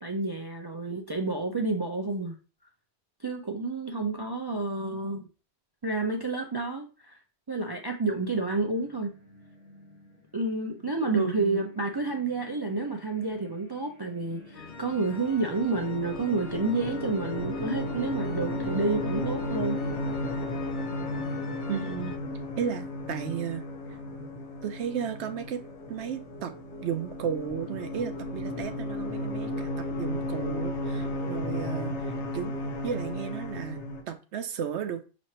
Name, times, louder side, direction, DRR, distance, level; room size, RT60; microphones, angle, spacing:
voice 1, 0.0-2.3 3.2-5.3 5.8-7.2 7.5-9.1 10.3-19.8, right 3 dB, 40° right, 3 dB, 0.3 m, -30 dB
sound 1, 8.0-20.6, left 6 dB, 90° left, 1.7 m, -49 dB
voice 2, 11.1-11.6 21.7-22.2 22.6-23.7 24.6-25.6 25.9-26.5 26.8-32.0 32.3-32.5 32.8-35.0, right 8 dB, 75° right, 8 dB, 0.9 m, -34 dB
sound 2, 14.5-34.0, left 1 dB, 75° left, 1.2 m, -34 dB
sound 3, 14.5-22.2, left 5 dB, 50° left, 0.7 m, -46 dB
6.0 x 3.1 x 2.8 m, 0.33 s
omnidirectional pair, 1.2 m